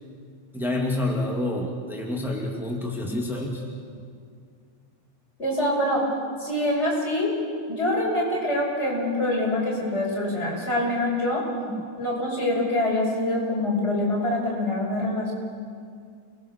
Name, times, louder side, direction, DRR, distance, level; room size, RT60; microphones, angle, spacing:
voice 1, 0.5-3.6 11.7-11.8, left 1 dB, ahead, -2 dB, 0.5 m, -28 dB
voice 2, 5.4-6.0 6.4-7.3 7.7-11.4 12.0-15.3, left 1 dB, 15° left, -3 dB, 5.8 m, -25 dB
29.0 x 21.5 x 6.8 m, 2.2 s
omnidirectional pair, 5.3 m